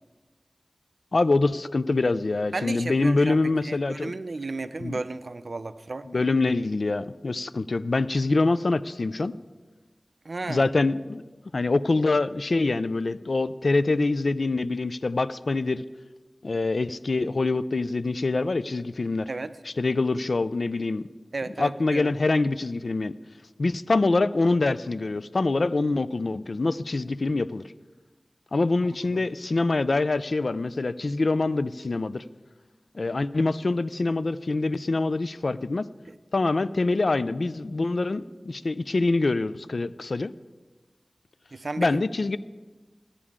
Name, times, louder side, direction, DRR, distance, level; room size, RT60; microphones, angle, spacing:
voice 1, 1.1-4.1 4.8-5.0 6.1-9.4 10.5-11.2 11.5-15.8 16.4-19.3 19.7-21.1 21.6-23.2 23.6-27.6 28.5-32.2 32.9-35.9 36.3-40.3 41.8-42.4, left 3 dB, 70° left, 16 dB, 0.3 m, -25 dB
voice 2, 2.5-3.4 3.7-6.0 10.3-10.7 19.3-19.5 21.3-22.1 29.1-29.2 41.5-42.0, right 3 dB, 65° right, 12 dB, 0.5 m, -33 dB
15.5 x 9.7 x 3.7 m, 1.3 s
wide cardioid pair, 70°, 0 cm